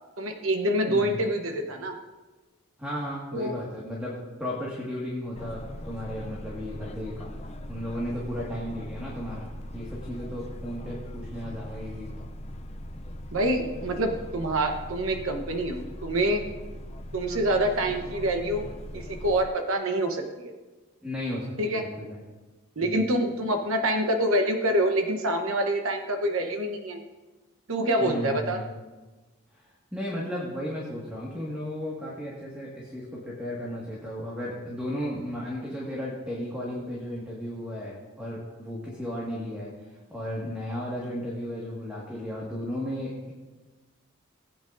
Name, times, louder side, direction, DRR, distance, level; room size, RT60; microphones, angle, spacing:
voice 1, 0.2-1.9 3.3-3.5 13.3-16.5 17.1-18.7 18.9-20.5 21.6-21.8 22.8-27.0 27.7-28.6, right 1 dB, 70° right, 4 dB, 1.0 m, -26 dB
voice 2, 0.9-1.2 2.8-7.3 7.7-12.3 21.0-22.2 22.8-23.0 28.0-28.7 29.5-43.3, equal, 5° right, -6 dB, 1.7 m, -35 dB
sound 1, 5.3-19.5, left 1 dB, 30° left, 0.4 m, -40 dB
19.0 x 8.8 x 2.6 m, 1.2 s
head